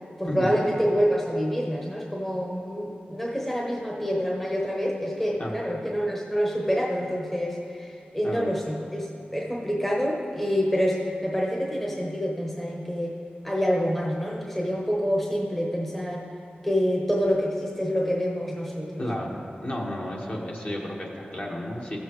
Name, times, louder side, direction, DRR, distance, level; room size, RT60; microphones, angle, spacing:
voice 1, 0.2-9.1 9.3-13.1 13.4-16.2 16.6-19.0, equal, 5° left, -2 dB, 1.0 m, -27 dB
voice 2, 8.2-8.5 19.0-19.3 19.6-22.0, left 1 dB, 40° left, -3 dB, 1.6 m, -32 dB
14.0 x 7.2 x 3.1 m, 2.5 s
wide cardioid pair, 65°, 4 cm